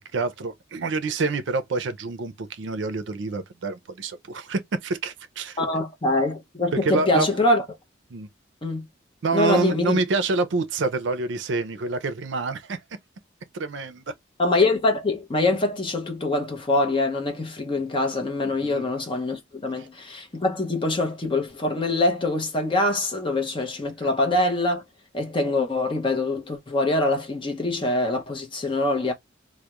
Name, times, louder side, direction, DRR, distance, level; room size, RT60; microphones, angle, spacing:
voice 1, 0.1-5.6 6.8-7.3 8.1-8.3 9.2-12.8 13.5-14.0 18.6-18.9 19.8-19.9, right 3 dB, 65° right, 0.5 m, -27 dB
voice 2, 5.6-7.6 8.6-8.8 9.3-10.0 14.4-24.8 25.1-29.1, left 2 dB, 25° left, 0.6 m, -24 dB
2.3 x 2.0 x 2.9 m
head